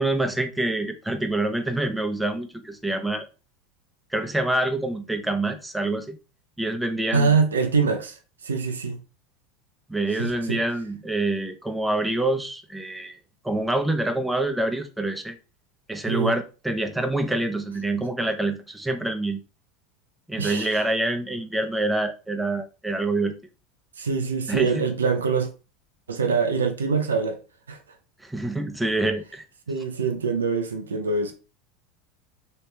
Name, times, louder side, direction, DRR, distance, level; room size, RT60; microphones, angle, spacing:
voice 1, 0.0-3.3 4.1-6.2 6.6-7.3 9.9-13.2 13.4-15.4 15.9-19.4 20.3-23.4 24.5-24.9 28.2-29.4, right 2 dB, 5° right, 0.8 m, -26 dB
voice 2, 7.1-9.0 10.2-10.6 16.1-16.4 20.4-20.8 24.0-25.5 26.1-27.4 27.7-27.8 29.7-31.3, right 5 dB, 90° right, 0.6 m, -24 dB
3.1 x 2.9 x 3.4 m
hypercardioid pair, 85°, 0 cm